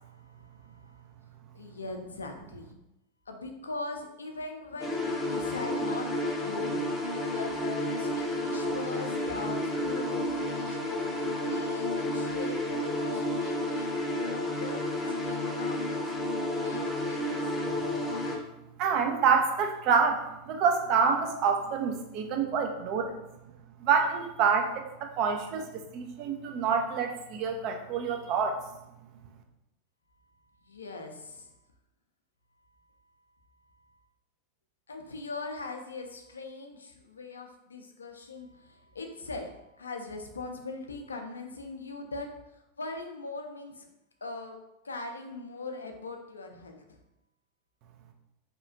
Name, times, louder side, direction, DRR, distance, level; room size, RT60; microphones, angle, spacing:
voice 1, 0.0-1.0 1.5-2.8 3.3-11.0 11.4-16.1 16.6-17.6 30.6-31.5 33.7-34.0 34.9-43.9 44.2-44.6 44.8-47.0, left 3 dB, 85° left, 4 dB, 0.4 m, -41 dB
sound 1, 4.8-18.4, left 1 dB, 15° left, 0.6 m, -31 dB
voice 2, 18.8-23.3 23.8-28.6, right 6 dB, 50° right, 4 dB, 0.4 m, -27 dB
2.8 x 2.3 x 2.5 m, 0.90 s
figure-of-eight pair, 90°, 0 cm